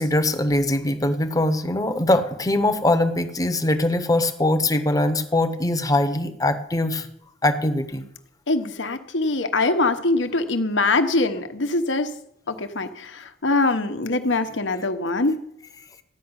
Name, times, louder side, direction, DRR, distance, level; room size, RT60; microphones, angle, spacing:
voice 1, 0.0-7.1 7.4-8.0, left 1 dB, 20° left, 8 dB, 0.9 m, -22 dB
voice 2, 8.5-12.1 12.5-15.3, left 2 dB, 80° left, 8 dB, 1.1 m, -23 dB
14.0 x 5.9 x 9.7 m, 0.72 s
head